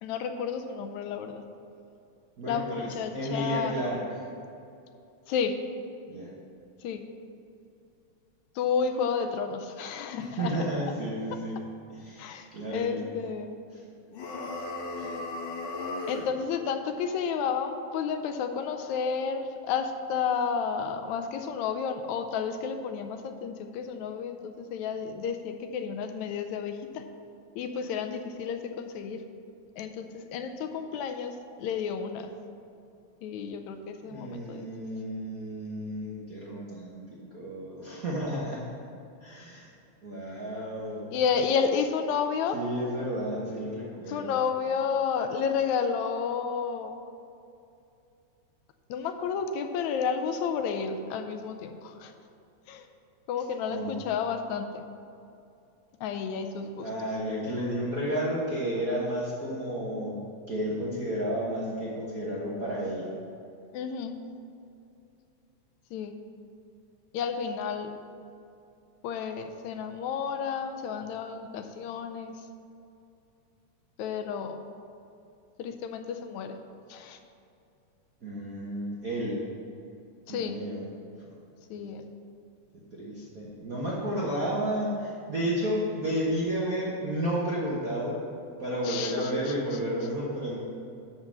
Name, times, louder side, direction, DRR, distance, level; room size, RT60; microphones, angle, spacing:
voice 1, 0.0-1.4 2.5-3.8 5.3-5.6 6.8-7.0 8.6-10.7 12.2-13.6 16.1-27.0 27.6-29.2 29.8-32.3 33.2-34.7 41.1-42.6 44.1-47.0 48.9-52.1 52.7-52.9 53.3-54.8 56.0-56.9 63.7-64.1 65.9-66.2 67.1-67.9 69.0-72.4 74.0-74.6 75.6-76.6 76.9-77.2 80.3-80.6 81.7-82.1 88.8-89.3, left 6 dB, 80° left, 7 dB, 1.9 m, -31 dB
voice 2, 2.4-4.3 6.1-6.3 10.2-11.6 11.9-13.1 13.7-13.8 14.9-15.2 34.1-37.0 37.3-38.7 39.2-39.7 40.0-41.1 42.5-44.4 53.7-54.0 56.8-60.2 60.5-63.1 78.2-79.4 80.3-80.9 81.7-81.9 82.7-88.2 88.6-90.6, equal, 55° right, -7 dB, 0.9 m, -32 dB
sound 1, 14.1-16.3, left 2 dB, 55° left, 1.4 m, -35 dB
11.0 x 3.9 x 7.3 m, 2.6 s
omnidirectional pair, 3.3 m